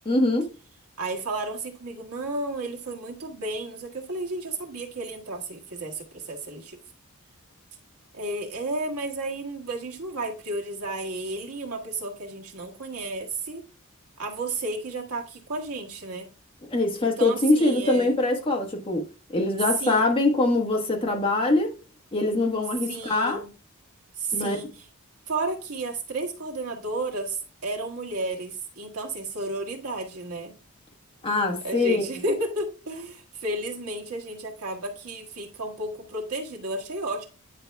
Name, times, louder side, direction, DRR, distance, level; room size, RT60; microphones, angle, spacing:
voice 1, 0.0-0.5 16.7-19.0 19.3-21.7 22.1-23.4 24.3-24.6 31.2-32.1, left 2 dB, 25° left, 1.3 m, -23 dB
voice 2, 1.0-6.8 8.1-13.6 14.2-16.3 17.0-18.1 19.8-20.0 22.8-23.5 24.2-24.9 25.3-30.5 31.6-37.2, right 2 dB, 90° right, 1.6 m, -32 dB
9.8 x 5.2 x 2.3 m
head